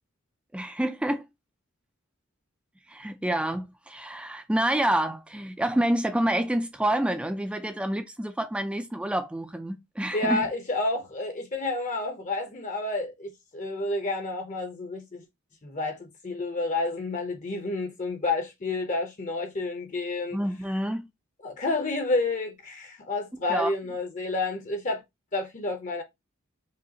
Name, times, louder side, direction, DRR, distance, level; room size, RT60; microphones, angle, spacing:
voice 1, 0.5-1.2 2.9-10.5 20.3-21.1 23.5-23.7, right 1 dB, 5° right, 0.3 m, -28 dB
voice 2, 10.1-15.2 15.6-20.4 21.4-25.0 25.3-26.0, left 2 dB, 35° left, 0.7 m, -30 dB
4.9 x 2.3 x 2.8 m
head